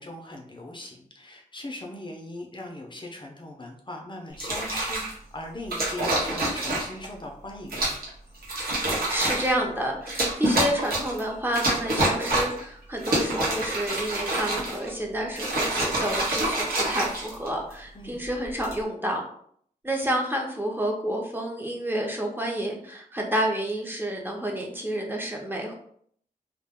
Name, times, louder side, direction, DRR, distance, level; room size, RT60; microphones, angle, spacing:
voice 1, 0.0-8.0 17.9-18.2, left 1 dB, 30° left, 1 dB, 0.5 m, -39 dB
sound 1, 4.3-5.1 5.7-7.1 7.7-8.1 8.4-9.5 10.1-11.2 11.5-12.6 13.0-14.9 15.3-17.7 18.4-18.8, right 1 dB, 85° right, 0.9 m, -27 dB
voice 2, 8.8-19.2 19.8-25.8, equal, 15° right, 0 dB, 0.6 m, -29 dB
2.3 x 2.1 x 3.5 m, 0.64 s
cardioid pair, 70°, 15 cm